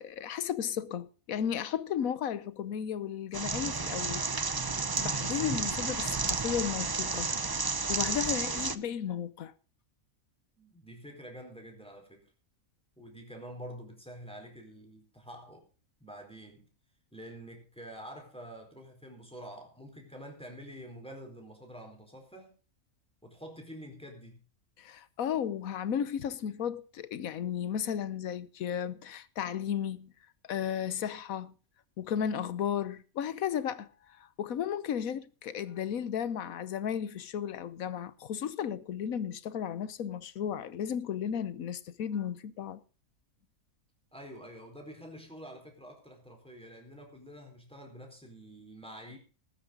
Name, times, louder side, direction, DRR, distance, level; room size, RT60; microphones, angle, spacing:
voice 1, 0.0-4.2 5.0-7.3 7.9-9.5 24.8-30.1 30.5-31.5 32.0-42.8, left 8 dB, 75° left, 1.3 m, -34 dB
sound 1, 3.3-8.8, right 4 dB, 35° right, 0.3 m, -32 dB
voice 2, 10.6-12.2 13.0-15.6 16.0-16.7 17.1-22.5 23.2-24.4 44.1-49.2, equal, 5° left, 4.2 m, -47 dB
19.0 x 9.8 x 3.8 m
omnidirectional pair, 1.5 m